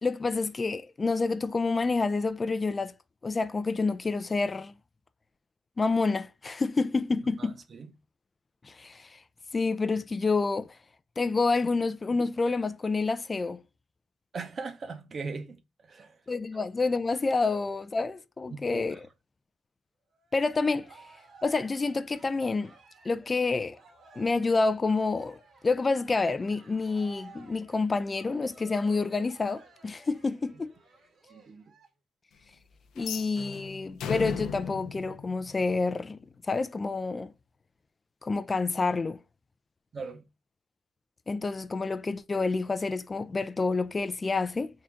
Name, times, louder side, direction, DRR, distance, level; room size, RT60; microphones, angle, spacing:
voice 1, 0.0-2.9 3.2-4.7 5.8-7.6 8.6-9.2 9.5-10.7 11.2-13.6 16.3-19.0 20.3-21.0 21.4-22.7 23.0-23.8 24.2-25.4 25.6-30.7 33.0-37.3 38.2-39.2 41.3-44.7, left 3 dB, 30° left, 0.3 m, -28 dB
voice 2, 7.4-7.9 14.3-15.6 15.9-16.2 18.5-19.0 31.3-31.6 39.9-40.2, right 4 dB, 45° right, 0.7 m, -39 dB
Cheering, 20.1-31.9, right 3 dB, 65° right, 1.4 m, -55 dB
sound 1, 33.0-36.1, left 7 dB, 80° left, 0.6 m, -37 dB
3.7 x 2.4 x 4.3 m
cardioid pair, 90°, 0 cm